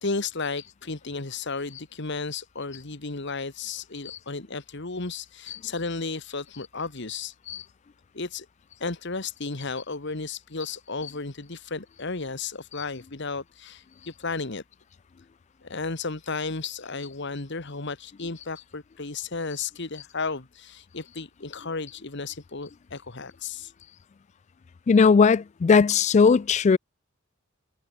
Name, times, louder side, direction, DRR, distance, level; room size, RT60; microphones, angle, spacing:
voice 1, 0.0-7.4 8.1-8.5 8.8-14.6 15.6-23.7, left 4 dB, 60° left, 1.7 m, -33 dB
voice 2, 24.9-26.8, left 5 dB, 35° left, 0.3 m, -18 dB
head